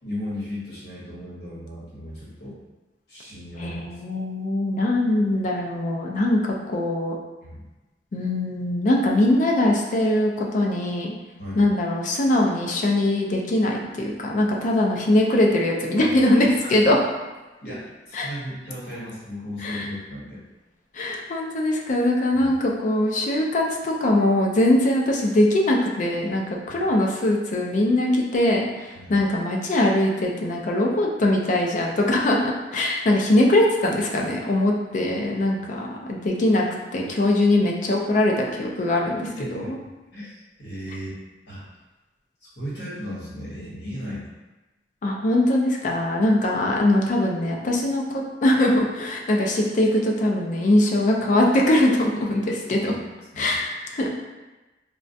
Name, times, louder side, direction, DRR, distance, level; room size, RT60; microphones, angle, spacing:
voice 1, 0.0-2.6 3.1-3.9 7.4-7.7 11.4-11.7 16.0-16.2 16.8-16.9 17.6-20.4 22.3-22.5 26.7-26.9 28.9-29.2 39.3-39.7 40.1-41.2 41.5-41.6 42.4-44.3 52.8-52.9 53.3-53.5, equal, 65° left, -8 dB, 1.1 m, -36 dB
voice 2, 3.6-7.1 8.1-11.1 11.6-17.0 18.1-18.3 19.6-19.9 20.9-36.7 36.9-39.8 45.0-52.9 53.4-54.1, left 1 dB, 45° left, 0 dB, 0.4 m, -22 dB
2.3 x 2.1 x 2.6 m, 1.1 s
head